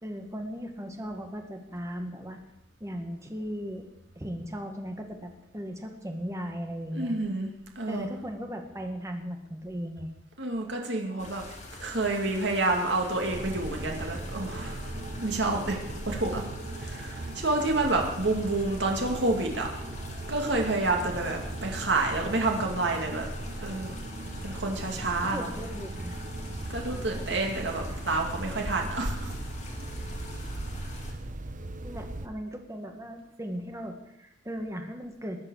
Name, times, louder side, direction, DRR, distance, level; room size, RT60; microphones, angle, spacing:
voice 1, 0.0-2.4 2.8-3.9 4.2-7.1 7.9-10.1 25.3-26.2 31.8-35.5, equal, 15° right, 4 dB, 1.9 m, -37 dB
voice 2, 6.9-8.1 10.4-14.9 15.2-15.8 16.0-16.4 16.8-19.7 20.3-23.3 23.6-24.0 24.4-25.5 26.7-29.3, right 2 dB, 65° right, 1 dB, 2.7 m, -29 dB
sound 1, 11.2-31.1, left 2 dB, 40° left, 2.9 m, -44 dB
sound 2, 13.3-32.3, right 2 dB, 45° right, 0.9 m, -38 dB
20.5 x 8.5 x 6.6 m, 0.93 s
head